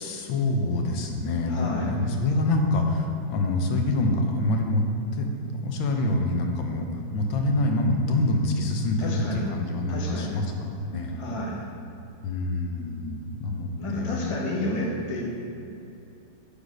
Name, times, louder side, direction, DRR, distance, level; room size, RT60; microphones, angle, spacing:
voice 1, 0.0-4.8 5.1-11.2 12.2-14.4, left 2 dB, 85° left, 3 dB, 1.6 m, -26 dB
voice 2, 1.5-1.9 9.0-9.5 9.9-10.3 11.2-11.6 13.8-15.2, left 1 dB, 30° left, -3 dB, 0.5 m, -31 dB
8.6 x 4.0 x 6.1 m, 2.8 s
omnidirectional pair, 2.1 m